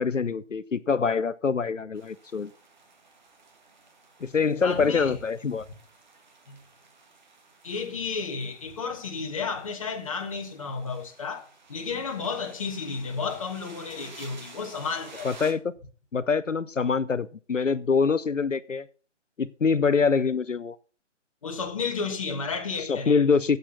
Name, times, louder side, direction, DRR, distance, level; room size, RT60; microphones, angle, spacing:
voice 1, 0.0-2.5 4.2-5.6 15.2-15.6 16.1-18.9 19.4-20.8 22.9-23.6, left 5 dB, 80° left, 0.7 m, -25 dB
sound 1, 2.0-15.5, right 3 dB, 35° right, 1.9 m, -52 dB
voice 2, 4.6-5.2 6.5-6.6 7.6-15.3 21.4-23.2, left 5 dB, 25° left, 1.3 m, -32 dB
8.6 x 8.1 x 7.0 m
figure-of-eight pair, 150°, 37 cm